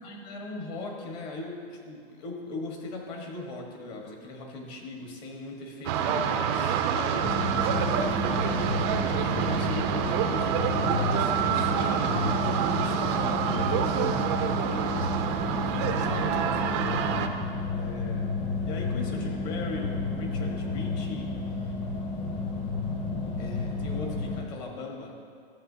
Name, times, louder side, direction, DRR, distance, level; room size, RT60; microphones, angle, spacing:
voice 1, 0.0-14.0 14.6-15.1 15.5-16.4 17.7-21.8 23.4-25.1, left 2 dB, 45° left, 1 dB, 1.5 m, -39 dB
sound 1, 5.9-17.3, right 8 dB, 30° right, 0.4 m, -27 dB
sound 2, 7.2-24.4, left 3 dB, 25° left, 0.8 m, -31 dB
13.0 x 7.4 x 2.8 m, 2.1 s
hypercardioid pair, 145°, 29 cm